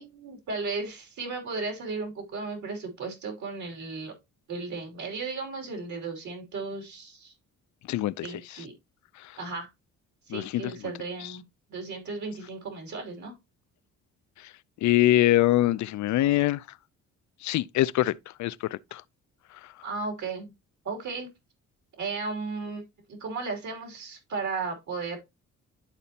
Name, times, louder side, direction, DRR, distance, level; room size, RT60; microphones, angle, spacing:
voice 1, 0.0-4.1 4.5-7.3 8.2-8.7 9.4-9.7 10.3-11.4 11.7-13.4 19.8-20.5 20.8-21.3 22.0-22.8 23.1-25.2, right 4 dB, 70° right, 2.8 m, -35 dB
voice 2, 7.9-8.3 10.3-10.6 14.8-16.6 17.4-19.0, left 15 dB, 70° left, 0.5 m, -24 dB
11.5 x 4.2 x 2.8 m
cardioid pair, 90°, 30 cm